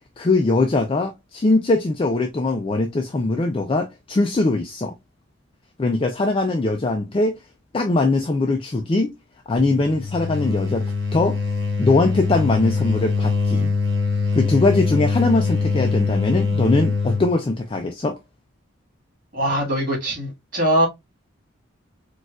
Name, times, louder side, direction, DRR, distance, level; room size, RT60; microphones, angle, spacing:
voice 1, 0.2-4.9 5.8-7.4 7.7-9.1 9.5-11.4 11.8-13.7 14.3-18.2, left 2 dB, 25° left, 0.3 m, -21 dB
sound 1, 9.6-17.3, left 4 dB, 60° right, 1.2 m, -23 dB
voice 2, 19.3-20.9, right 1 dB, 40° right, 1.9 m, -21 dB
4.3 x 2.4 x 2.3 m
head